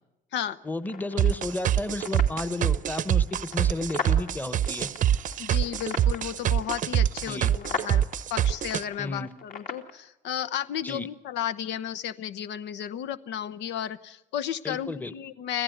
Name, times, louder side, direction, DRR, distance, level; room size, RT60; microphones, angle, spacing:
voice 1, 0.6-4.9 7.3-7.5 9.0-9.3 10.8-11.1 14.6-15.1, left 2 dB, 10° left, 13 dB, 1.0 m, -33 dB
sound 1, 0.8-9.9, left 5 dB, 50° left, 2.5 m, -40 dB
sound 2, 1.2-8.8, right 10 dB, 45° right, 0.7 m, -24 dB
voice 2, 5.4-8.0 8.3-15.6, left 10 dB, 90° left, 13 dB, 0.9 m, -33 dB
25.5 x 15.5 x 8.0 m, 0.95 s
cardioid pair, 145°, 18 cm